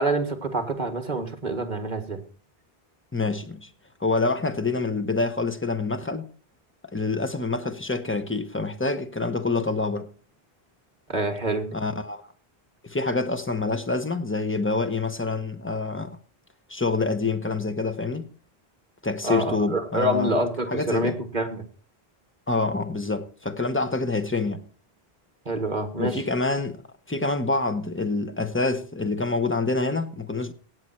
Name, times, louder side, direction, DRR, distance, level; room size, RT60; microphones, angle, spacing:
voice 1, 0.0-2.2 11.1-11.7 19.2-21.6 25.5-26.2, right 1 dB, 45° right, 2.1 m, -26 dB
voice 2, 3.1-3.7 4.0-6.2 6.9-10.1 11.7-12.2 12.8-16.2 16.7-18.2 19.0-20.3 20.7-21.2 22.5-24.6 26.0-26.8 27.1-30.5, left 3 dB, 10° left, 1.0 m, -26 dB
17.0 x 8.0 x 4.4 m
omnidirectional pair, 1.0 m